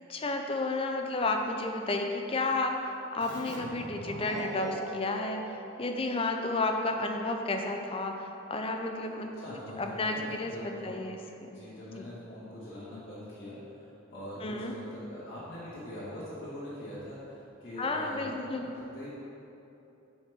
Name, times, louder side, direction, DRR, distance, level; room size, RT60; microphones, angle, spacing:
voice 1, 0.1-9.3 9.8-11.6 12.0-12.1 14.4-14.7 17.8-18.6, left 2 dB, 30° left, 3 dB, 0.5 m, -32 dB
Keyboard (musical), 3.2-6.6, right 1 dB, 60° right, 0.8 m, -42 dB
voice 2, 9.4-19.1, left 1 dB, 65° left, -11 dB, 1.6 m, -43 dB
7.1 x 3.5 x 5.8 m, 2.9 s
head